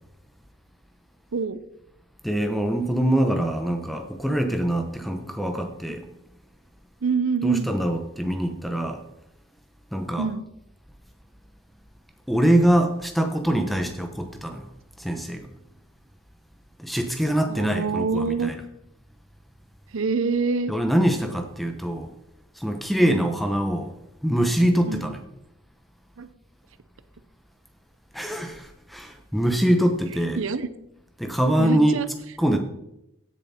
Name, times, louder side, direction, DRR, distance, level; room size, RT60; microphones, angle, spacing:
voice 1, 1.3-1.6 7.0-7.7 10.2-10.4 17.5-18.5 19.9-20.7 23.0-23.3 24.9-25.2 26.2-26.3 30.4-30.7 31.6-32.1, right 4 dB, 70° right, 13 dB, 0.6 m, -26 dB
voice 2, 2.2-6.1 7.4-9.0 9.9-10.3 12.3-14.7 15.0-15.5 16.8-18.5 20.7-22.1 22.6-23.9 24.2-25.2 28.1-30.4 31.2-32.0 32.4-32.6, right 1 dB, ahead, 5 dB, 1.0 m, -24 dB
16.0 x 7.0 x 4.4 m, 0.83 s
head